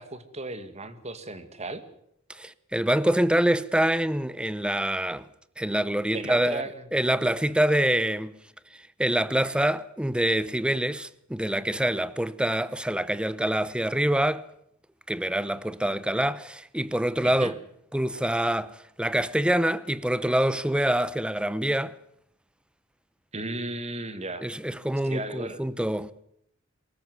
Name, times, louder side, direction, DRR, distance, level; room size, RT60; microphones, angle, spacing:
voice 1, 0.0-1.8 6.1-6.9 17.2-17.5 23.3-24.4 25.0-25.6, right 2 dB, 35° right, 2.1 m, -35 dB
voice 2, 2.3-5.3 5.6-6.6 6.9-8.4 8.7-14.4 15.1-17.5 17.9-22.0 24.4-26.1, right 1 dB, 5° right, 0.8 m, -25 dB
23.5 x 14.0 x 9.6 m
head